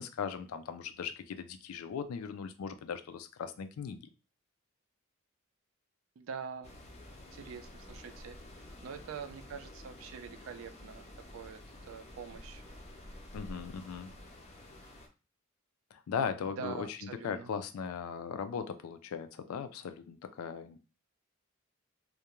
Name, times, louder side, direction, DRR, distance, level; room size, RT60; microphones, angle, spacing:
voice 1, 0.0-4.1 13.3-14.1 15.9-17.0 17.2-20.8, left 6 dB, 90° left, 10 dB, 0.3 m, -38 dB
voice 2, 6.2-6.8 7.3-12.6 16.5-17.5, right 6 dB, 70° right, 9 dB, 0.3 m, -45 dB
sound 1, 6.6-15.1, left 1 dB, 30° left, 0.4 m, -50 dB
2.4 x 2.1 x 2.9 m, 0.33 s
head